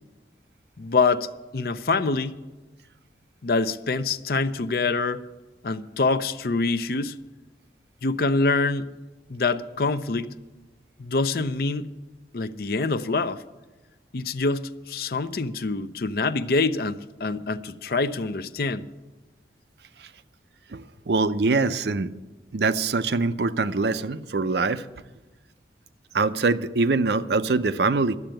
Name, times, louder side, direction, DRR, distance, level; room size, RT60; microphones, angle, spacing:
voice 1, 0.8-1.3 1.5-2.3 3.4-5.2 5.6-7.2 8.0-8.9 9.3-10.3 11.0-11.9 12.3-13.4 14.1-18.9, left 3 dB, 55° left, 0.6 m, -25 dB
voice 2, 20.7-22.1 22.5-24.8 26.1-28.2, right 3 dB, 70° right, 0.6 m, -23 dB
12.0 x 7.8 x 8.9 m
head